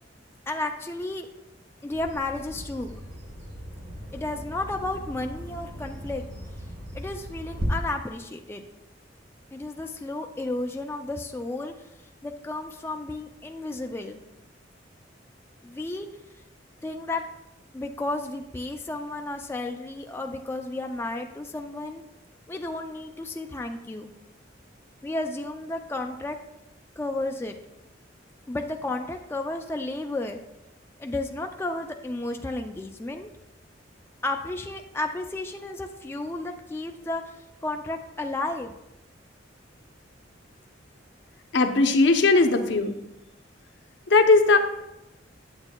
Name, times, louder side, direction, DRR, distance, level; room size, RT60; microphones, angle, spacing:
voice 1, 0.5-1.3 1.8-3.0 4.1-6.2 6.9-8.6 9.5-11.7 12.2-14.2 15.6-16.1 16.8-17.2 17.7-22.0 22.5-24.1 25.0-26.4 27.0-27.6 28.5-30.4 31.0-33.3 34.2-37.2 37.6-38.7, left 2 dB, 15° left, 3 dB, 0.3 m, -32 dB
Bird vocalization bird call bird song, 1.9-7.6, equal, 85° right, 1.6 m, -39 dB
voice 2, 41.5-43.0 44.1-44.6, left 3 dB, 65° left, 6 dB, 0.7 m, -18 dB
8.8 x 7.8 x 2.2 m, 0.90 s
head